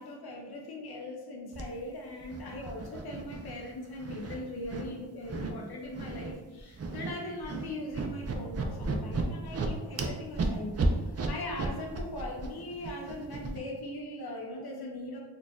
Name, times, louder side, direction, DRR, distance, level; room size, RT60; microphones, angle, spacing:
voice 1, 0.0-15.2, left 1 dB, 65° left, -1 dB, 0.7 m, -40 dB
sound 1, 1.5-1.6 2.2-3.7 4.0-4.8 5.3-5.5 5.9-6.3 6.6-7.1 7.4-13.6, right 3 dB, 40° right, 0.4 m, -33 dB
3.9 x 2.5 x 2.3 m, 1.2 s
wide cardioid pair, 65°, 41 cm